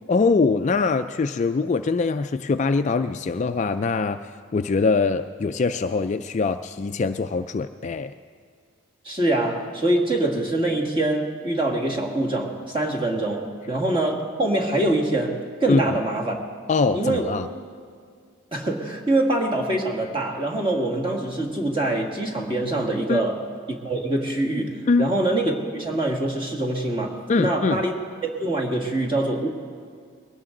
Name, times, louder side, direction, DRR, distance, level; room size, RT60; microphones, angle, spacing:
voice 1, 0.1-8.1 15.7-15.8 16.7-17.5 23.1-23.2 24.9-25.1 27.3-27.8, left 4 dB, 35° left, 9 dB, 0.3 m, -23 dB
voice 2, 9.0-16.4 16.9-17.3 18.5-23.4 23.7-27.9 28.2-29.5, right 2 dB, 25° right, -1 dB, 1.9 m, -24 dB
21.5 x 17.5 x 3.8 m, 2.2 s
head